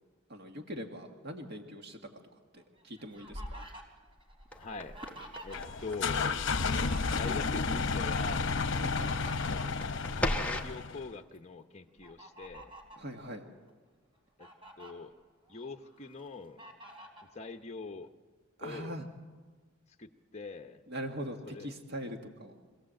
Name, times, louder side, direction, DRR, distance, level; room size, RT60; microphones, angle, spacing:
voice 1, 0.3-2.0 2.5-3.6 8.8-9.1 13.0-13.4 18.6-19.1 20.9-22.5, right 1 dB, 55° right, 4 dB, 1.9 m, -41 dB
Fowl, 2.6-5.9 6.2-7.7 8.6-10.7 11.2-11.4 12.0-13.1 13.7-13.8 14.1-14.9 15.5-16.1 16.6-17.3, equal, 25° right, 3.7 m, -48 dB
sound 1, 4.5-10.8, left 1 dB, 5° left, 1.4 m, -39 dB
voice 2, 4.6-4.9 5.4-6.3 7.1-8.5 9.2-9.8 10.4-12.7 14.4-14.5 14.8-15.1 15.5-16.6 17.3-18.1 18.6-19.0 20.0-20.8 21.4-21.7, left 3 dB, 30° left, 5 dB, 0.8 m, -43 dB
sound 2, 5.5-11.1, left 4 dB, 60° left, 0.9 m, -32 dB
25.0 x 16.5 x 7.7 m, 1.4 s
head